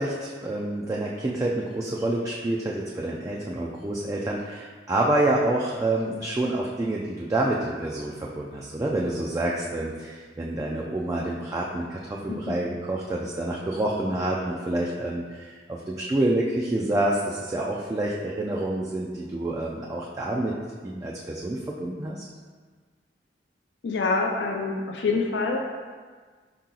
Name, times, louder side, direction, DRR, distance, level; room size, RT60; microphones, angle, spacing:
voice 1, 0.0-20.5 20.8-22.2, right 1 dB, 20° right, -3 dB, 0.3 m, -28 dB
voice 2, 23.8-25.7, left 3 dB, 70° left, 1 dB, 0.4 m, -26 dB
4.7 x 2.9 x 3.7 m, 1.5 s
head